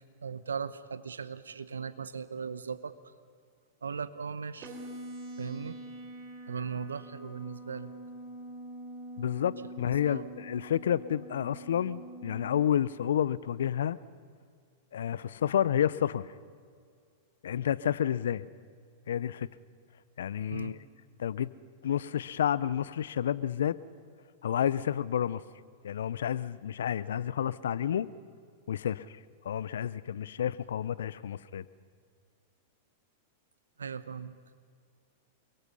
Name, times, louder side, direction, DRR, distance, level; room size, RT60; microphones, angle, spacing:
voice 1, 0.2-3.0 3.8-4.8 5.4-5.8 6.5-7.9 10.0-10.3 20.5-20.7 33.8-34.4, right 6 dB, 85° right, 14 dB, 1.0 m, -38 dB
sound 1, 4.6-12.6, right 1 dB, 40° right, 3.8 m, -45 dB
voice 2, 9.2-14.0 14.9-16.3 17.4-18.4 19.1-19.5 20.2-20.8 21.2-21.5 21.8-23.8 24.4-25.4 25.8-28.1 28.7-29.2 29.4-31.7, left 9 dB, 75° left, 19 dB, 0.7 m, -30 dB
29.5 x 22.0 x 5.6 m, 2.1 s
hypercardioid pair, 105°, 0 cm